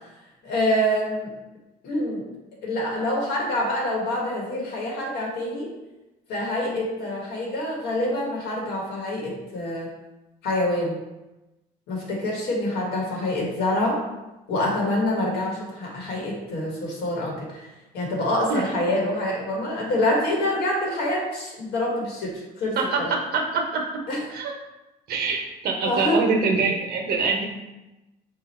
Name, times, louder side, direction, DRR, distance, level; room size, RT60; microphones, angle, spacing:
voice 1, 0.4-1.3 1.8-2.2 2.6-5.7 6.3-9.9 10.4-11.0 11.9-14.0 14.5-17.7 17.9-23.1 24.1-24.2 25.8-26.2, left 1 dB, 75° left, -2 dB, 1.5 m, -26 dB
voice 2, 22.8-23.8 24.3-24.5 25.1-27.5, right 4 dB, 65° right, 2 dB, 0.9 m, -24 dB
4.8 x 2.4 x 4.2 m, 1.0 s
cardioid pair, 110°, 17 cm